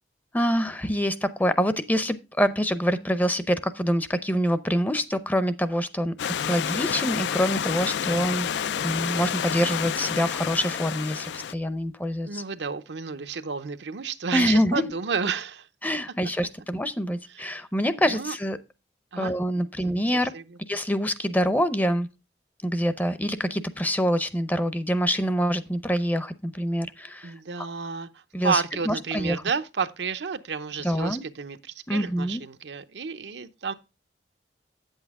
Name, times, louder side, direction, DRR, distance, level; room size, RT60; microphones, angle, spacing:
voice 1, 0.3-6.1 6.4-8.5 8.8-12.4 14.3-14.9 15.8-18.6 19.2-20.3 20.7-22.1 22.6-27.7 28.3-29.4 30.8-31.2 31.9-32.4, equal, 10° left, 0.6 m, -25 dB
Stream / Liquid, 6.2-11.5, left 8 dB, 80° left, 0.4 m, -29 dB
voice 2, 12.2-15.7 17.3-17.4 18.0-18.3 19.1-19.3 19.8-20.4 27.2-33.7, right 5 dB, 80° right, 0.7 m, -31 dB
8.6 x 8.1 x 3.5 m
head